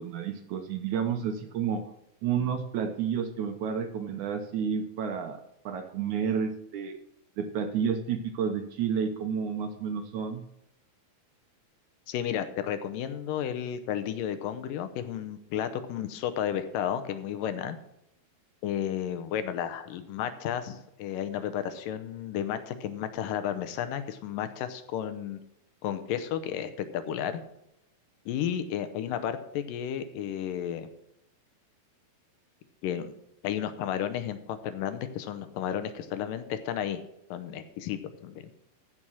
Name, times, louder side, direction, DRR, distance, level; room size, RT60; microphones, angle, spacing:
voice 1, 0.0-1.8 2.2-5.4 5.7-7.0 7.4-10.4, right 7 dB, 70° right, 6 dB, 2.0 m, -30 dB
voice 2, 12.1-17.8 18.6-25.4 25.8-27.4 28.3-30.9 32.8-33.1 33.4-37.0 37.3-38.5, left 9 dB, 75° left, 10 dB, 2.4 m, -32 dB
14.5 x 5.7 x 6.2 m, 0.81 s
omnidirectional pair, 4.1 m